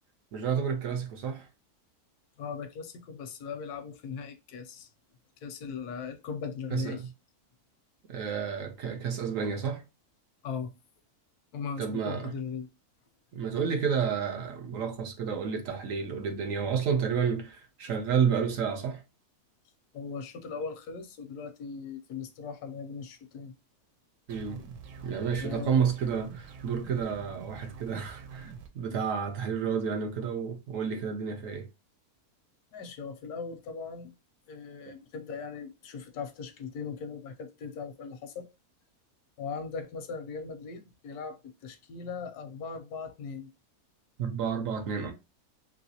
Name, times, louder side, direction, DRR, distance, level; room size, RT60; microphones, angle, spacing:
voice 1, 0.3-1.5 6.7-7.0 8.1-9.8 11.8-12.3 13.3-19.0 24.3-24.6 25.0-31.7 44.2-45.1, right 6 dB, 65° right, 1.0 m, -30 dB
voice 2, 2.4-4.9 5.4-7.1 10.4-10.7 11.5-12.7 19.9-23.5 25.4-25.9 32.7-34.1 34.5-38.5 39.4-43.5, left 5 dB, 85° left, 1.2 m, -39 dB
sound 1, 24.3-28.7, right 6 dB, 85° right, 1.1 m, -46 dB
3.0 x 3.0 x 2.8 m
omnidirectional pair, 1.6 m